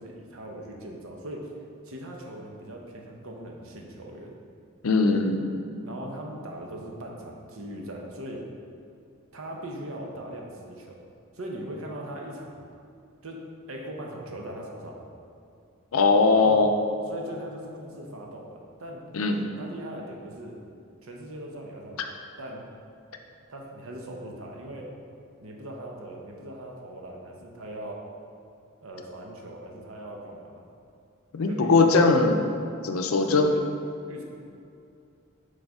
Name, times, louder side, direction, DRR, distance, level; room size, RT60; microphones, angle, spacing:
voice 1, 0.0-1.5 1.8-4.3 5.8-8.4 9.3-11.1 11.3-12.6 13.2-13.4 13.7-15.0 16.3-16.6 17.1-19.0 19.6-20.6 21.0-22.6 23.5-24.9 25.4-28.0 28.8-30.6 31.5-32.1 33.1-34.2, right 1 dB, 85° right, 0 dB, 0.9 m, -40 dB
voice 2, 4.8-5.5 15.9-16.7 19.1-19.5 31.3-32.4 32.8-33.5, left 3 dB, 85° left, 4 dB, 0.6 m, -20 dB
6.5 x 3.9 x 4.8 m, 2.6 s
head